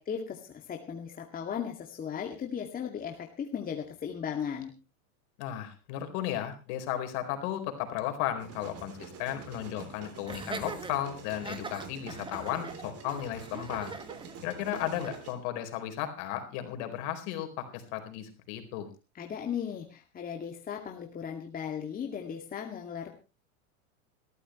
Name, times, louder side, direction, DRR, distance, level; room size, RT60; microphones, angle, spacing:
voice 1, 0.0-4.7 19.1-23.1, left 7 dB, 20° left, 2 dB, 2.3 m, -36 dB
voice 2, 5.4-13.9 14.4-18.9, left 11 dB, 50° left, 6 dB, 4.3 m, -35 dB
sound 1, 8.4-15.4, right 7 dB, 35° right, 3.6 m, -46 dB
Laughter, 10.3-15.2, right 4 dB, 10° right, 1.6 m, -42 dB
21.5 x 14.0 x 3.1 m, 0.30 s
supercardioid pair, 130°, 43 cm